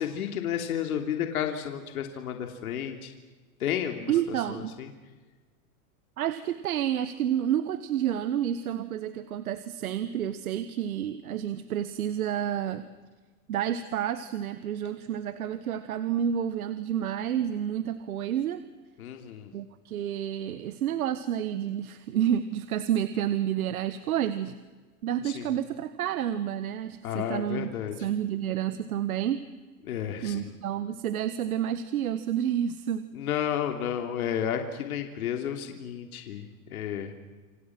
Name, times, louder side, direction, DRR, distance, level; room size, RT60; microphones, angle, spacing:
voice 1, 0.0-3.1 3.6-4.1 4.5-4.9 19.0-19.5 25.2-25.5 27.0-28.0 29.8-30.5 33.1-37.1, left 9 dB, 70° left, 4 dB, 3.2 m, -32 dB
voice 2, 4.1-4.8 6.2-12.8 13.5-18.6 19.5-24.6 25.0-27.7 28.0-29.4 30.2-33.1, right 10 dB, 70° right, 12 dB, 1.5 m, -29 dB
28.5 x 25.5 x 6.1 m, 1.3 s
supercardioid pair, 170°, 45 cm